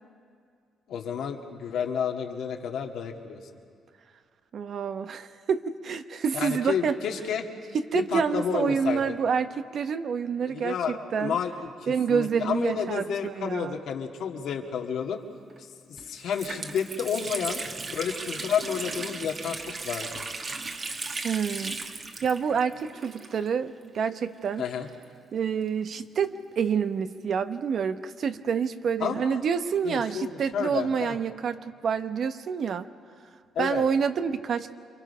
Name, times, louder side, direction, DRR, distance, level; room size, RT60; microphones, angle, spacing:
voice 1, 0.9-3.4 6.3-7.5 7.9-9.0 10.5-15.2 15.9-17.6 17.9-20.3 24.6-24.9 29.0-29.4 29.8-31.2 33.6-33.8, left 7 dB, 75° left, 2 dB, 1.9 m, -31 dB
voice 2, 4.5-7.0 7.7-11.4 11.9-13.8 21.2-21.8 22.2-24.6 25.3-32.9 33.6-34.8, right 6 dB, 60° right, 10 dB, 0.9 m, -28 dB
Water tap faucet, 15.5-15.6 16.0-23.7 24.0-24.1 24.9-26.4, right 3 dB, 40° right, 1.7 m, -37 dB
28.5 x 24.0 x 5.6 m, 2.3 s
cardioid pair, 90°, 0 cm